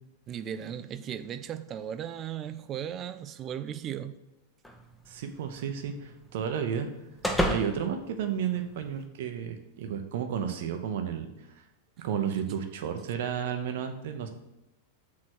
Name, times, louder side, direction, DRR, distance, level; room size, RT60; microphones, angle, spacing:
voice 1, 0.3-4.2, right 9 dB, 30° right, 11 dB, 0.4 m, -36 dB
sound 1, 4.6-9.1, equal, 5° left, 0.9 m, -35 dB
voice 2, 5.1-6.9 7.5-11.3 12.0-14.3, right 8 dB, 55° right, 6 dB, 0.8 m, -32 dB
6.6 x 4.2 x 6.2 m, 0.94 s
figure-of-eight pair, 90°, 0 cm